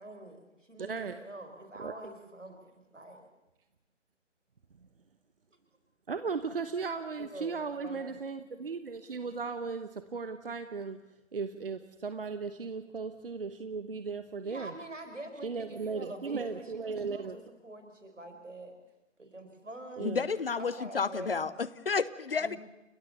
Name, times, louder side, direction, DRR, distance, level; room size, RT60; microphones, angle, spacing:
voice 1, 0.0-3.3 7.2-8.2 14.4-18.7 19.2-20.1 20.6-21.5 22.4-22.6, right 1 dB, 80° right, 5 dB, 5.0 m, -46 dB
voice 2, 0.8-1.1 1.8-1.9 6.1-11.0 11.3-14.7 15.4-17.4 20.0-20.3, right 5 dB, 50° right, 10 dB, 1.0 m, -36 dB
voice 3, 20.0-22.6, left 5 dB, 50° left, 18 dB, 0.9 m, -31 dB
30.0 x 14.0 x 6.9 m, 0.98 s
figure-of-eight pair, 145°, 36 cm